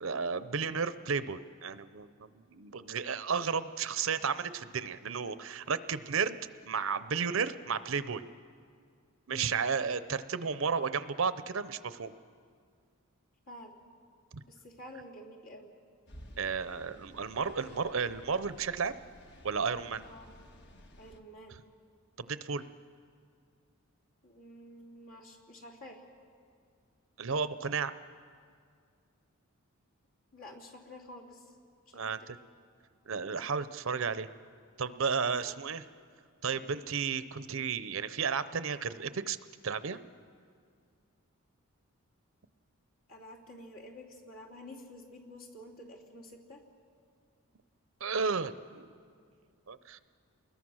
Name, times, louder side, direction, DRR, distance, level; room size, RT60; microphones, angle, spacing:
voice 1, 0.0-6.4 6.7-8.2 9.3-12.1 14.3-14.4 16.4-18.9 19.4-20.0 22.2-22.6 27.2-27.9 31.9-32.4 33.1-34.3 34.8-35.8 36.4-39.4 39.6-40.0 48.0-48.9 49.7-50.0, right 5 dB, 65° right, 13 dB, 0.7 m, -33 dB
voice 2, 13.5-13.8 14.5-15.7 20.0-20.3 21.0-21.6 24.2-26.0 30.3-31.5 31.9-32.0 35.4-35.5 43.1-46.6, left 1 dB, 70° left, 0 dB, 3.0 m, -50 dB
sound 1, 16.1-21.2, equal, 50° left, 1.4 m, -54 dB
29.5 x 21.5 x 6.3 m, 2.2 s
head